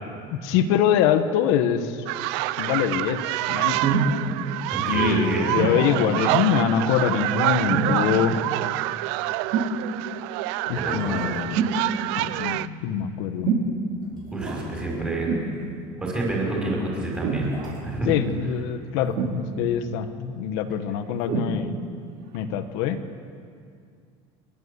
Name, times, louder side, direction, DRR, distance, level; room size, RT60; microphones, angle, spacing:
voice 1, 0.3-2.0 2.6-3.9 4.9-8.5 10.7-11.6 12.1-13.6 18.0-21.8 22.3-23.0, left 8 dB, 80° left, 8 dB, 1.3 m, -24 dB
sound 1, 2.1-12.7, right 17 dB, 75° right, 0.5 m, -27 dB
sound 2, 3.8-4.1 5.6-5.8 7.7-8.1 9.5-9.8 11.5-11.8 13.4-13.7 15.3-15.5 17.2-17.5 19.2-19.7 21.3-21.5 22.3-22.4, right 5 dB, 55° right, 3.1 m, -24 dB
voice 2, 4.7-5.5 10.7-11.3 14.3-15.3 16.0-17.5 17.8-18.1, right 2 dB, 10° right, -2 dB, 5.0 m, -28 dB
sound 3, 7.5-8.2 8.4-8.5 8.9-9.1 9.8-9.9 10.6-11.5 13.0-15.7 16.9-19.2 19.4-19.5, right 3 dB, 35° right, 6.6 m, -43 dB
28.5 x 12.0 x 8.3 m, 2.3 s
cardioid pair, 180°, 14 cm